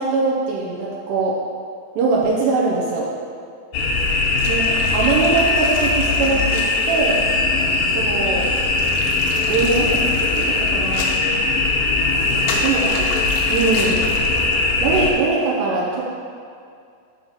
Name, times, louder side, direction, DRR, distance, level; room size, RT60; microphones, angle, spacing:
voice 1, 0.0-1.4 2.0-3.1 4.5-7.2 7.9-8.5 9.5-11.1 12.3-13.1 13.5-14.1 14.8-16.0, right 4 dB, 80° right, -4 dB, 2.8 m, -22 dB
sound 1, 3.7-15.1, left 3 dB, 90° left, 1.9 m, -20 dB
6.2 x 4.8 x 4.0 m, 2.3 s
omnidirectional pair, 4.9 m